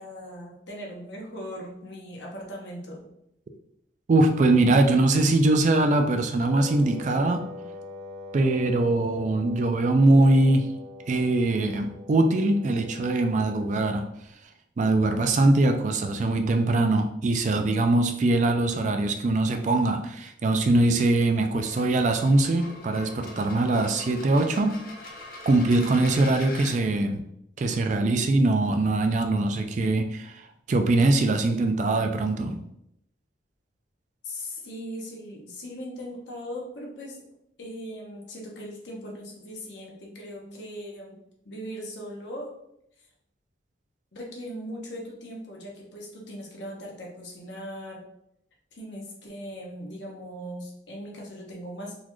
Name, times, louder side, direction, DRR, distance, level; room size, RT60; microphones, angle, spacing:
voice 1, 0.0-3.1 34.2-37.2 37.6-41.2 41.4-42.5 43.0-43.1 44.1-48.0 48.7-51.9, equal, 70° left, -1 dB, 1.0 m, -39 dB
voice 2, 4.1-7.4 8.3-10.7 11.1-14.1 14.8-24.7 25.5-27.2 27.6-32.6, right 2 dB, 40° right, 5 dB, 0.3 m, -22 dB
Wind instrument woodwind instrument, 6.4-14.0, left 3 dB, 20° right, 0.9 m, -43 dB
sound 1, 21.5-26.8, left 2 dB, 50° left, 0.6 m, -43 dB
3.9 x 2.4 x 3.0 m, 0.77 s
head